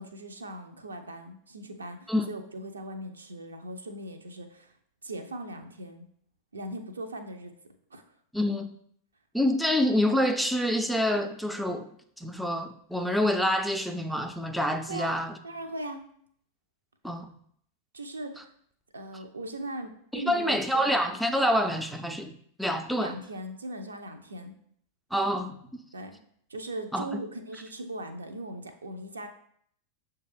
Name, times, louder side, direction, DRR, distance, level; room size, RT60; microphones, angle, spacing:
voice 1, 0.0-4.7 5.0-6.1 6.5-7.5 7.9-8.0 14.9-15.2 15.4-16.1 17.9-18.5 18.9-20.9 23.0-24.5 25.9-26.2 26.5-29.3, right 1 dB, 75° right, 6 dB, 0.4 m, -39 dB
voice 2, 8.3-8.8 9.3-11.9 12.2-15.3 17.0-17.3 20.1-22.3 22.6-23.1 25.1-25.6 26.9-27.2, equal, ahead, 5 dB, 0.3 m, -27 dB
6.3 x 2.2 x 3.3 m, 0.65 s
figure-of-eight pair, 90°, 0 cm